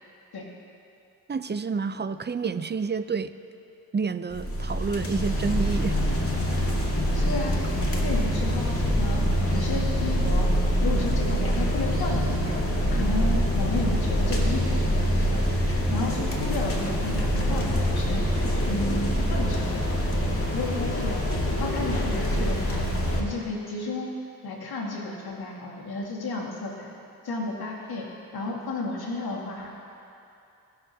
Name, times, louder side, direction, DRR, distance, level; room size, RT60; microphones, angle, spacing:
voice 1, 1.3-3.3 3.9-6.0 6.3-6.8, right 5 dB, 25° right, 12 dB, 0.7 m, -29 dB
sound 1, 4.3-23.2, equal, 30° left, 2.3 m, -25 dB
voice 2, 7.1-7.6 8.0-9.2 9.5-10.5 10.8-12.3 12.9-14.8 15.1-15.4 15.9-18.3 18.7-20.2 20.5-21.2 21.6-22.8 23.2-24.1 24.4-26.9 27.2-28.1 28.3-29.7, left 2 dB, 60° left, -2 dB, 2.2 m, -32 dB
sound 2, 7.4-20.7, right 2 dB, 5° right, 1.8 m, -37 dB
20.5 x 7.0 x 2.9 m, 2.7 s
supercardioid pair, 40°, 42 cm